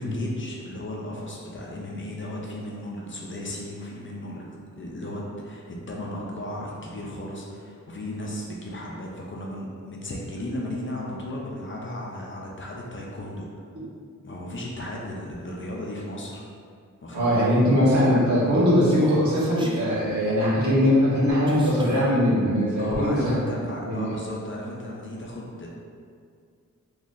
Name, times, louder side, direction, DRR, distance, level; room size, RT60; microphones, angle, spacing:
voice 1, 0.0-13.6 14.2-16.4 17.0-17.5 22.8-25.7, left 1 dB, 40° left, -3 dB, 0.5 m, -35 dB
voice 2, 17.1-23.3 23.8-24.1, equal, 70° right, -9 dB, 1.3 m, -21 dB
Human voice, 18.9-19.9 21.5-22.1, right 1 dB, 15° right, 0.3 m, -39 dB
3.9 x 3.0 x 2.5 m, 2.2 s
wide cardioid pair, 155°, 31 cm